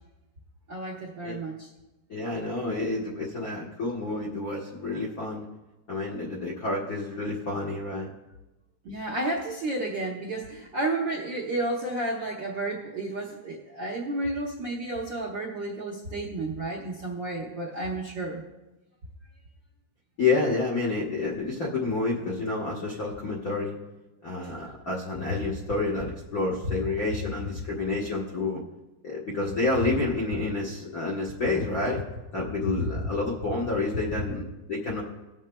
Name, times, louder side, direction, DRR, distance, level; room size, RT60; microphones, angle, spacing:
voice 1, 0.7-1.7 8.8-18.4 24.6-24.7, right 2 dB, 65° right, -4 dB, 1.2 m, -31 dB
voice 2, 2.1-5.5 5.9-8.1 20.2-23.8 24.2-28.6 29.0-32.0 32.3-35.0, left 3 dB, 70° left, -5 dB, 0.8 m, -29 dB
19.5 x 7.3 x 2.2 m, 1.0 s
omnidirectional pair, 3.4 m